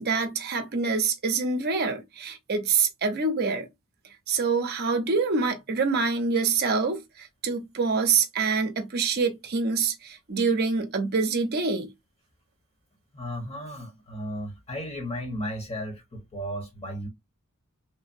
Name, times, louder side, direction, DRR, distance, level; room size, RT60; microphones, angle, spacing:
voice 1, 0.0-3.7 4.3-11.9, right 4 dB, 50° right, 0.6 m, -26 dB
voice 2, 13.1-17.1, equal, 30° left, 0.9 m, -35 dB
3.2 x 2.0 x 2.5 m
head